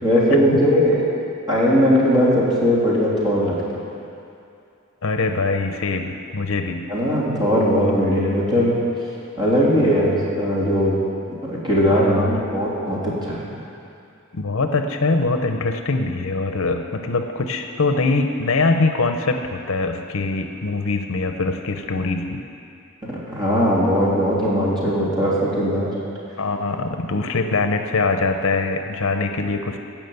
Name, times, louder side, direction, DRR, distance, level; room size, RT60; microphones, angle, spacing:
voice 1, 0.0-1.0 1.5-3.6 6.9-8.8 9.4-11.0 11.4-13.4 23.0-25.9, equal, 20° right, -7 dB, 3.2 m, -19 dB
voice 2, 5.0-6.8 9.8-9.9 11.9-12.4 14.3-22.4 26.4-29.8, left 3 dB, 65° left, 6 dB, 0.8 m, -23 dB
16.0 x 6.0 x 8.1 m, 2.6 s
head